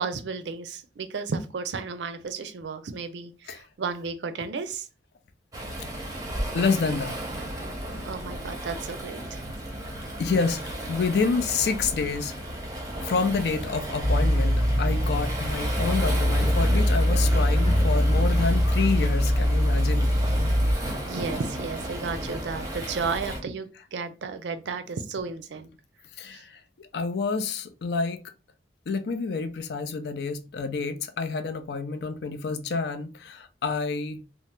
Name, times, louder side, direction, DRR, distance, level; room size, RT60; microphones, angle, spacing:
voice 1, 0.0-4.9 8.0-9.5 21.0-25.7 26.3-26.4, right 4 dB, 80° right, 0.4 m, -33 dB
Waves surf, 5.5-23.4, right 1 dB, 20° right, 0.6 m, -34 dB
voice 2, 6.5-7.2 10.2-12.3 13.0-20.1 26.2-28.2 28.9-34.2, left 4 dB, 65° left, 0.4 m, -28 dB
sound 1, 14.0-20.7, equal, 30° left, 0.7 m, -22 dB
2.7 x 2.0 x 3.2 m
head